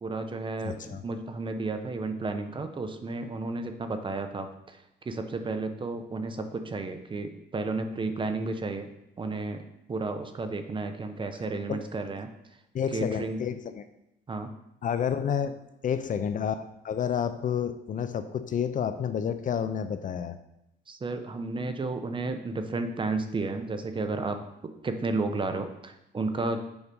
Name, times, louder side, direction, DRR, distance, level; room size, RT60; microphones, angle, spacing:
voice 1, 0.0-4.8 5.0-8.9 9.2-9.6 9.9-12.3 12.9-13.4 14.3-14.5 20.9-24.4 24.6-26.6, right 3 dB, 25° right, 7 dB, 0.8 m, -32 dB
voice 2, 0.6-1.0 11.7-11.9 12.7-13.8 14.8-15.6 15.8-20.4, left 8 dB, 45° left, 11 dB, 0.5 m, -30 dB
7.2 x 4.8 x 5.4 m, 0.85 s
cardioid pair, 115°, 19 cm